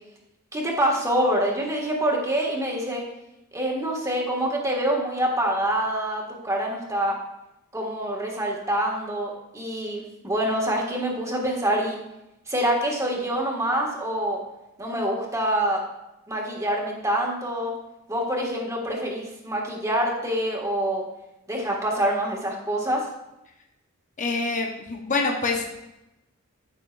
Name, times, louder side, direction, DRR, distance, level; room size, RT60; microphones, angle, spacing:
voice 1, 0.5-3.0 3.5-7.2 7.7-12.0 12.5-14.4 14.8-15.8 16.3-17.7 18.1-21.0 21.5-23.1, right 1 dB, 15° right, -2 dB, 1.8 m, -26 dB
voice 2, 24.2-25.6, left 3 dB, 35° left, 1 dB, 1.0 m, -26 dB
15.0 x 6.1 x 2.5 m, 0.92 s
head